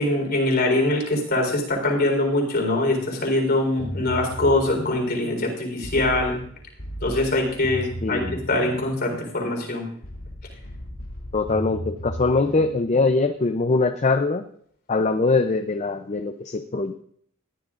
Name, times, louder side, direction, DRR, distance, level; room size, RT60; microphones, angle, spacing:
voice 1, 0.0-6.4 7.0-8.2 8.5-9.9, left 2 dB, 50° left, 2 dB, 4.0 m, -23 dB
sound 1, 3.8-13.6, equal, 80° left, 2.7 m, -36 dB
voice 2, 8.0-8.4 11.3-14.4 14.9-16.9, left 3 dB, 35° left, 7 dB, 0.6 m, -22 dB
20.0 x 14.0 x 2.5 m, 0.63 s
head